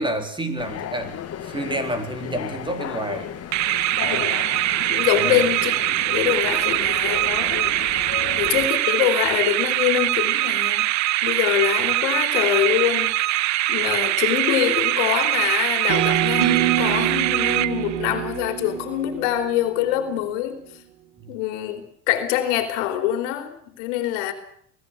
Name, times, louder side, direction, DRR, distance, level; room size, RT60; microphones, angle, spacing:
voice 1, 0.0-3.3 4.0-4.4 5.1-5.4 8.2-8.4 21.2-21.3, right 1 dB, 15° right, 7 dB, 4.2 m, -30 dB
sound 1, 0.6-8.7, left 10 dB, 45° left, 2.6 m, -34 dB
sound 2, 3.5-18.2, right 16 dB, 50° right, 0.8 m, -23 dB
voice 2, 4.0-4.4 4.8-7.6 8.0-10.9 11.2-20.6 21.3-24.3, left 12 dB, 80° left, 8 dB, 3.5 m, -25 dB
sound 3, 15.9-20.0, right 13 dB, 80° right, 2.5 m, -26 dB
23.5 x 17.0 x 7.8 m, 0.64 s
supercardioid pair, 100°, 36 cm